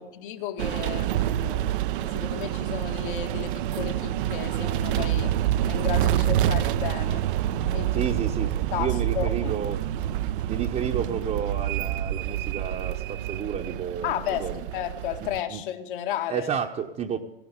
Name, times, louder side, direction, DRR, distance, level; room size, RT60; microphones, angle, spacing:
voice 1, 0.0-5.4 5.7-7.3 7.7-8.0 8.7-9.6 14.0-16.5, left 10 dB, 60° left, 1.8 m, -33 dB
sound 1, 0.6-15.4, right 12 dB, 60° right, 0.7 m, -27 dB
voice 2, 7.9-9.8 10.5-14.6 15.5-15.6 16.3-17.2, right 8 dB, 25° right, 1.0 m, -31 dB
16.0 x 11.0 x 8.2 m
hypercardioid pair, 95°, 30 cm